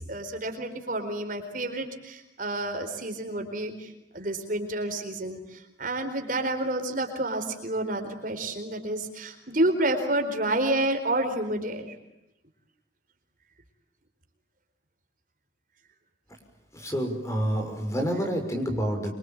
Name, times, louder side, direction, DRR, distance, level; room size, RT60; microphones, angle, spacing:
voice 1, 0.0-12.0, right 1 dB, 45° right, 5 dB, 4.3 m, -29 dB
voice 2, 16.7-19.1, equal, 15° left, 5 dB, 6.1 m, -28 dB
26.5 x 25.0 x 9.0 m, 0.89 s
head